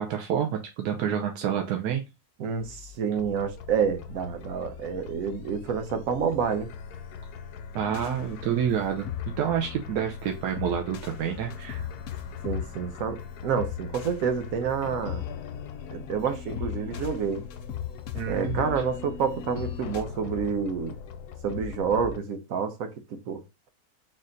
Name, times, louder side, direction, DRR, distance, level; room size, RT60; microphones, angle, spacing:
voice 1, 0.0-2.0 7.7-11.9 18.1-18.6, right 9 dB, 90° right, 1.2 m, -28 dB
voice 2, 2.4-6.7 12.4-15.3 15.9-17.5 18.3-20.9 21.4-23.4, right 6 dB, 65° right, 1.1 m, -28 dB
sound 1, 2.6-22.2, left 6 dB, 85° left, 1.2 m, -41 dB
sound 2, 7.8-20.0, left 10 dB, 65° left, 0.8 m, -39 dB
4.1 x 2.5 x 3.8 m
omnidirectional pair, 1.7 m